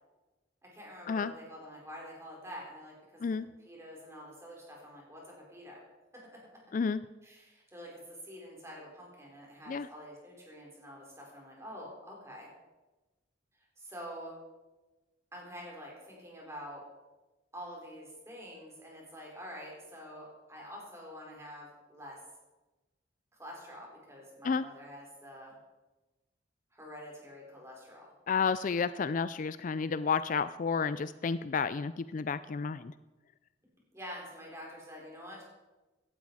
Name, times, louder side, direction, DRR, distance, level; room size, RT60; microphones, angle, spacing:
voice 1, 0.7-3.3 3.6-5.8 7.2-12.5 13.8-14.4 15.3-16.8 17.5-22.2 23.4-25.6 26.7-28.1 33.9-35.4, equal, 15° right, -2 dB, 4.9 m, -47 dB
voice 2, 28.3-32.9, left 5 dB, 45° left, 14 dB, 0.4 m, -31 dB
17.0 x 12.0 x 4.9 m, 1.1 s
head